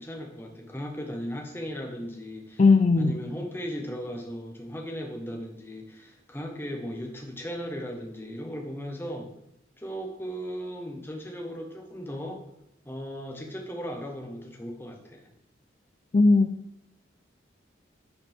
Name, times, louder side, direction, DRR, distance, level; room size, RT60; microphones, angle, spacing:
voice 1, 0.0-2.6 3.0-9.3 9.8-12.4 12.8-15.3, equal, 10° left, 2 dB, 1.1 m, -37 dB
voice 2, 2.6-3.1 16.1-16.5, left 3 dB, 35° left, 7 dB, 0.3 m, -18 dB
10.5 x 6.5 x 3.5 m, 0.79 s
head